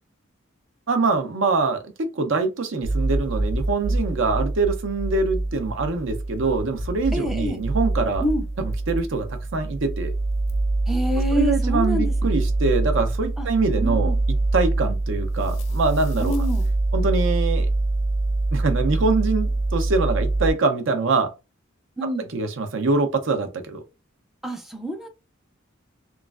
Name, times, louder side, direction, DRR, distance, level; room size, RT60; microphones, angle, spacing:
voice 1, 0.9-8.2 8.6-10.1 11.3-14.1 14.5-16.4 16.9-17.7 18.5-21.3 22.3-23.8, right 3 dB, 65° right, 0.6 m, -24 dB
sound 1, 2.8-20.5, right 2 dB, 75° left, 0.6 m, -24 dB
voice 2, 7.1-7.6 8.2-8.4 10.9-12.1 13.4-13.5 13.8-14.2 16.2-16.7 22.0-22.3 24.4-25.1, equal, ahead, 0.4 m, -27 dB
3.0 x 2.4 x 2.4 m
head